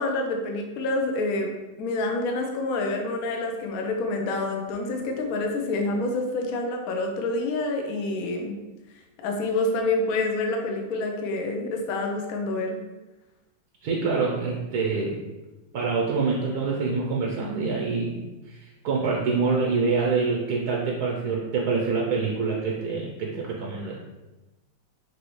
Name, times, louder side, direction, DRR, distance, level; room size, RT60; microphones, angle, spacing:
voice 1, 0.0-1.5 1.8-8.5 9.2-12.8, left 2 dB, 65° left, 2 dB, 1.0 m, -27 dB
voice 2, 13.8-15.2 15.7-24.0, right 4 dB, 70° right, -2 dB, 1.1 m, -26 dB
6.2 x 2.7 x 3.0 m, 1.1 s
omnidirectional pair, 1.9 m